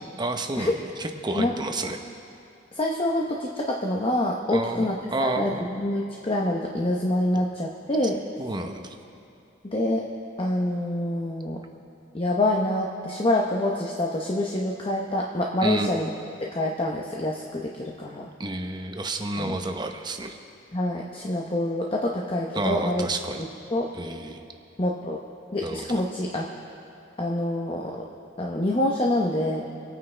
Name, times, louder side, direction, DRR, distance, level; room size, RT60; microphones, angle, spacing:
voice 1, 0.2-2.0 4.5-5.7 8.4-9.0 15.6-15.9 18.4-20.4 22.5-23.4 23.9-24.4 25.6-26.0, right 2 dB, 25° right, 4 dB, 0.9 m, -30 dB
voice 2, 2.7-8.2 9.6-10.0 10.4-11.6 12.1-16.1 16.5-18.3 19.4-19.6 20.7-23.0 23.7-23.9 24.8-25.2 25.5-26.5 27.2-28.1 28.4-29.7, left 1 dB, 30° left, -1 dB, 0.8 m, -26 dB
26.0 x 9.4 x 3.3 m, 2.7 s
head